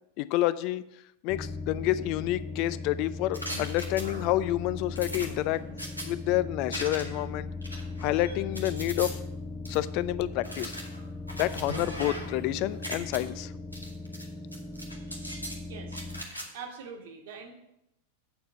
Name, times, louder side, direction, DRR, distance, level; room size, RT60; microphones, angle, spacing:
voice 1, 0.2-0.8 1.2-5.6 6.0-7.5 8.0-9.2 9.7-10.8 11.3-13.5, left 15 dB, 45° left, 16 dB, 0.4 m, -29 dB
sound 1, 1.3-16.2, left 3 dB, 15° left, 0.8 m, -39 dB
sound 2, 3.3-4.4 5.0-6.1 6.7-7.3 7.6-9.1 9.7-9.8 10.4-12.4 12.7-13.2 13.7-14.3 14.5-15.6 15.9-16.5, equal, 90° left, 1.2 m, -39 dB
voice 2, 15.6-16.0 16.5-17.5, right 5 dB, 55° right, 3 dB, 1.4 m, -44 dB
8.4 x 4.5 x 6.8 m, 0.84 s
figure-of-eight pair, 90°, 0 cm